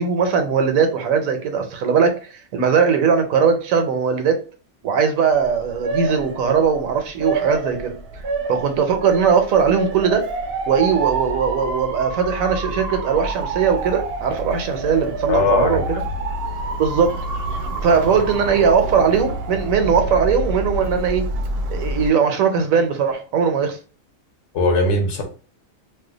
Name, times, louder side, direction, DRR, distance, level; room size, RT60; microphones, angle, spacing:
voice 1, 0.0-4.4 4.8-7.9 8.5-10.3 10.7-16.0 16.8-17.2 17.8-21.3 21.7-23.8, right 6 dB, 80° right, 1.1 m, -19 dB
Motor vehicle (road) / Siren, 5.3-22.1, right 2 dB, 65° right, 0.6 m, -28 dB
voice 2, 15.3-15.8 24.5-25.2, left 2 dB, 60° left, 1.0 m, -19 dB
2.7 x 2.2 x 3.7 m
omnidirectional pair, 1.4 m